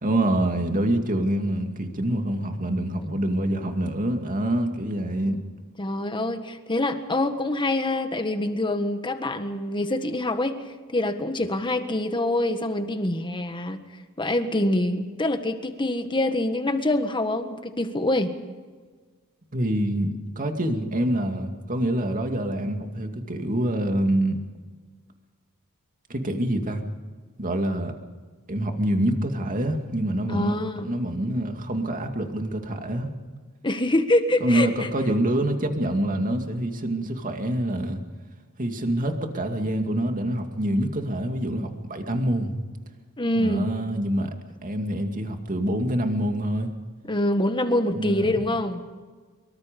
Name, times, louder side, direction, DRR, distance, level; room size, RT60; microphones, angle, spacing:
voice 1, 0.0-5.4 19.5-24.4 26.1-26.8 27.4-27.9 28.5-33.1 34.4-38.0 38.6-42.5 43.4-44.3 44.6-46.7 47.9-48.3, right 1 dB, 40° right, 5 dB, 2.4 m, -26 dB
voice 2, 5.8-10.7 10.9-13.8 14.2-18.3 30.3-30.9 33.6-34.9 43.2-43.7 47.1-48.8, left 1 dB, 20° left, 8 dB, 1.6 m, -25 dB
24.0 x 23.5 x 5.3 m, 1.4 s
head